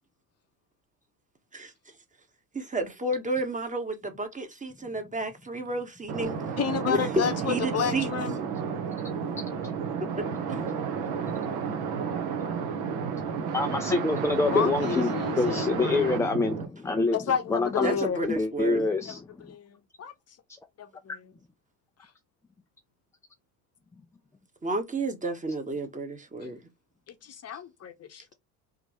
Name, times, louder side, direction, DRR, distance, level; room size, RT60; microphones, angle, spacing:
voice 1, 2.5-6.4 6.9-8.1 10.1-10.2 17.8-18.9 24.6-26.6, right 2 dB, 15° right, 1.3 m, -31 dB
sound 1, 6.1-16.7, right 6 dB, 65° right, 1.2 m, -31 dB
voice 2, 6.6-8.4 9.7-9.8 14.4-16.1 17.1-18.2 19.1-19.2 19.4-20.1 20.8-21.3 27.1-28.2, left 7 dB, 30° left, 0.9 m, -31 dB
voice 3, 13.5-17.2 17.5-19.2, left 3 dB, 5° left, 0.4 m, -26 dB
3.7 x 3.5 x 3.0 m
figure-of-eight pair, 60°, 47 cm